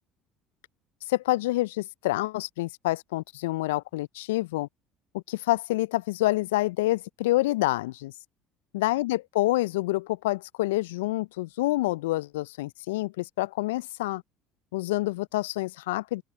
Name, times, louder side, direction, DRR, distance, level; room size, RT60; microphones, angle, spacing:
voice 1, 1.1-4.7 5.1-8.1 8.7-14.2 14.7-16.2, left 18 dB, 75° left, 0.6 m, -27 dB
open air
figure-of-eight pair, 60°, 0 cm